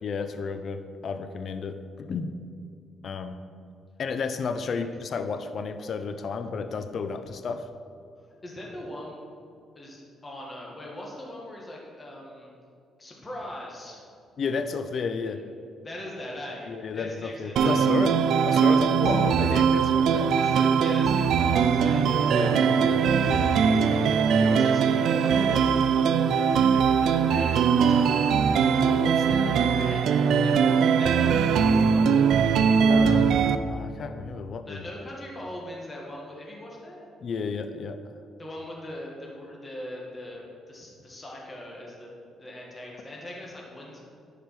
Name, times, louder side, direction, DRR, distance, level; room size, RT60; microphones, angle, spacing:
voice 1, 0.0-2.3 3.0-3.4 4.0-7.7 14.4-15.4 16.7-18.2 18.5-20.3 21.9-23.5 28.8-29.6 32.9-33.4 33.7-34.8 37.2-38.0, left 5 dB, 55° left, 9 dB, 0.5 m, -32 dB
voice 2, 8.4-9.2 9.7-12.5 13.0-14.0 15.2-15.3 15.8-18.1 19.0-19.1 20.3-22.5 23.4-26.2 26.6-28.5 29.4-32.6 34.6-37.1 38.4-42.1 42.4-44.0, left 1 dB, 25° left, -3 dB, 1.7 m, -40 dB
sound 1, 17.6-33.6, right 6 dB, 75° right, 0.4 m, -21 dB
10.5 x 5.0 x 4.6 m, 2.4 s
cardioid pair, 90°, 0 cm